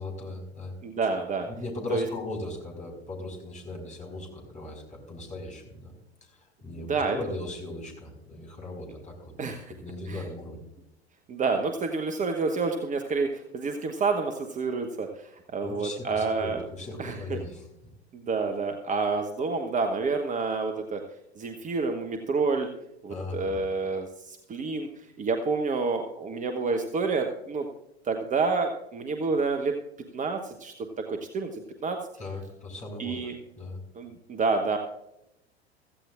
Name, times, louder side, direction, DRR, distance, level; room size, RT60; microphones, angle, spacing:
voice 1, 0.0-0.7 1.5-5.9 6.2-9.3 9.7-10.6 15.6-17.7 23.1-23.6 32.2-33.8, left 2 dB, 20° left, 1 dB, 5.0 m, -38 dB
voice 2, 0.8-1.5 1.9-2.1 6.9-7.2 9.4-9.7 10.1-10.2 11.3-16.6 17.0-17.4 18.1-21.0 21.4-22.7 23.0-24.9 25.2-27.7 28.0-29.7 30.1-30.7 31.1-32.0 33.0-33.3 33.9-34.8, right 4 dB, 25° right, 5 dB, 1.0 m, -28 dB
16.0 x 14.5 x 2.5 m, 0.86 s
figure-of-eight pair, 80°, 33 cm